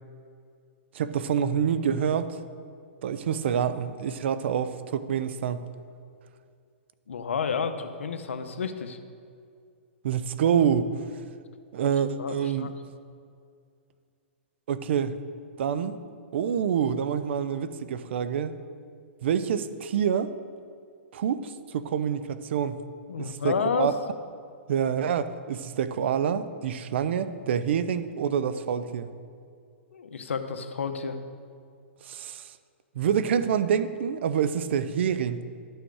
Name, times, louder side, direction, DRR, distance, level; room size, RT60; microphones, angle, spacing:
voice 1, 0.9-2.4 3.0-5.6 10.0-10.9 11.7-12.7 14.7-15.2 15.6-16.0 16.3-18.5 19.2-20.3 21.1-22.8 23.2-23.9 24.7-29.1 32.0-32.5 33.0-35.4, right 8 dB, 65° right, 12 dB, 0.6 m, -27 dB
voice 2, 7.1-9.0 12.2-12.7 23.1-23.9 29.9-31.2, left 6 dB, 85° left, 8 dB, 0.8 m, -30 dB
11.5 x 6.4 x 4.7 m, 2.3 s
hypercardioid pair, 135°, 7 cm